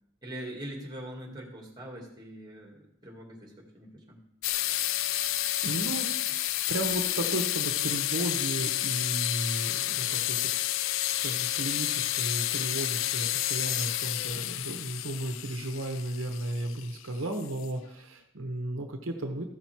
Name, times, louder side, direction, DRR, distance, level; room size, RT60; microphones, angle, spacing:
voice 1, 0.2-4.2, right 1 dB, 20° right, 0 dB, 2.2 m, -42 dB
sound 1, 4.4-17.8, left 14 dB, 65° left, 0.3 m, -30 dB
voice 2, 5.6-6.4 6.7-10.4 11.1-19.4, right 1 dB, 75° right, 4 dB, 0.9 m, -34 dB
14.0 x 5.9 x 4.5 m, 0.78 s
head